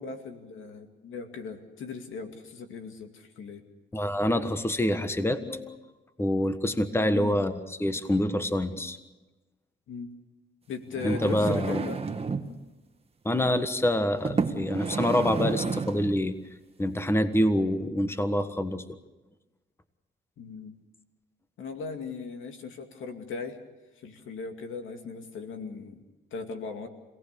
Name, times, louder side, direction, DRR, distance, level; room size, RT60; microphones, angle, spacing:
voice 1, 0.0-3.6 6.9-7.4 9.9-10.1 10.7-12.0 20.4-20.8 21.6-23.6 24.0-26.0 26.3-26.9, left 5 dB, 80° left, 5 dB, 2.4 m, -38 dB
voice 2, 3.9-5.8 6.2-9.0 11.0-11.8 13.2-16.3 16.8-18.8, left 1 dB, 10° left, 9 dB, 1.4 m, -26 dB
sound 1, 10.9-12.5 13.4-13.6 14.2-16.2 16.9-17.0, right 4 dB, 30° right, 1.6 m, -31 dB
26.5 x 18.0 x 6.9 m, 1.1 s
cardioid pair, 85°, 20 cm